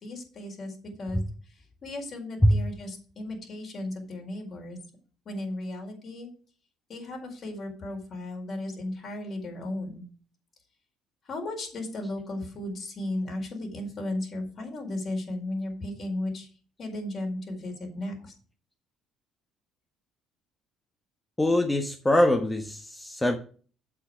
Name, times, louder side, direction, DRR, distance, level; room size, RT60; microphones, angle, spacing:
voice 1, 0.0-1.2 1.8-4.8 5.2-6.3 6.9-10.0 11.3-16.5 16.8-18.3, left 1 dB, 50° left, 4.6 m, -35 dB
voice 2, 21.4-23.4, left 1 dB, 15° left, 1.3 m, -23 dB
8.6 x 8.2 x 4.9 m
hypercardioid pair, 50°, 0 cm